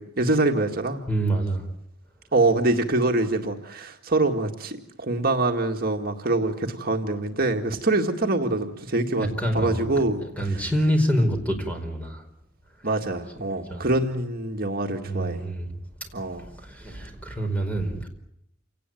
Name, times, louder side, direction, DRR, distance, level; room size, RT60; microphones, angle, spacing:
voice 1, 0.0-1.0 2.3-10.2 10.5-10.7 12.8-15.4 16.1-16.5, right 2 dB, 50° right, 3 dB, 2.0 m, -25 dB
voice 2, 1.1-1.6 9.2-12.2 13.4-13.8 15.0-15.7 16.4-18.1, right 1 dB, 10° left, 4 dB, 4.8 m, -27 dB
28.5 x 18.5 x 9.2 m, 0.78 s
head